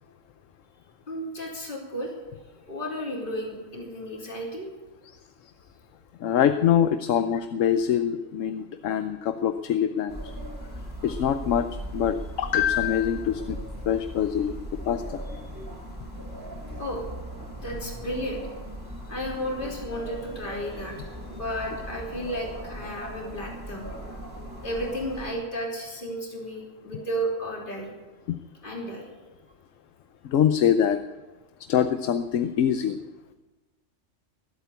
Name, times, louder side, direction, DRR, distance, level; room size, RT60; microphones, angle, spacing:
voice 1, 1.1-2.1 2.7-4.7 16.8-17.0 17.6-18.5 19.1-23.9 24.6-27.9 28.6-29.1, equal, 40° left, -2 dB, 3.3 m, -33 dB
voice 2, 6.2-10.2 11.0-13.6 13.9-15.2 28.3-28.4 30.2-31.0 31.7-33.0, left 9 dB, 90° left, 10 dB, 1.1 m, -24 dB
sound 1, 10.1-25.3, right 1 dB, 15° right, 3.0 m, -38 dB
21.0 x 8.1 x 8.2 m, 1.2 s
omnidirectional pair, 1.3 m